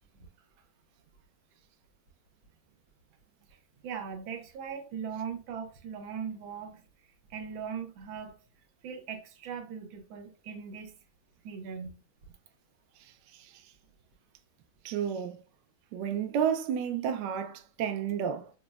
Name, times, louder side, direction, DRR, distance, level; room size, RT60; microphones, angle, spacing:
voice 1, 3.8-6.8 7.3-8.3 8.8-10.9 11.4-12.0, right 7 dB, 90° right, 1.5 m, -39 dB
voice 2, 14.8-15.4 15.9-18.5, right 8 dB, 75° right, 1.1 m, -31 dB
5.9 x 2.0 x 2.2 m
omnidirectional pair, 2.2 m